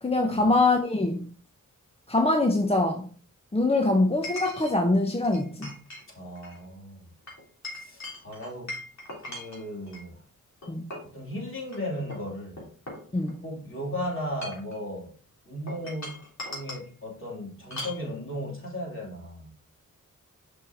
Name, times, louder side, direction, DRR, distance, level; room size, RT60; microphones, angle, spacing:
voice 1, 0.0-1.3 2.1-3.1 3.5-5.8 10.7-10.8 13.1-13.4, left 2 dB, 20° left, 0.7 m, -24 dB
Chink clink, 0.8-0.9 4.2-4.7 5.2-6.0 6.3-6.6 7.3-10.0 10.6-11.1 11.6-11.8 12.1-13.5 14.2-14.8 15.7-16.9 17.7-18.0, left 1 dB, 60° left, 3.2 m, -39 dB
voice 2, 6.1-7.0 7.7-8.8 9.2-10.2 11.0-12.7 13.4-15.2 15.4-19.5, equal, 40° left, 2.8 m, -36 dB
6.1 x 5.6 x 2.7 m
cardioid pair, 60°, 32 cm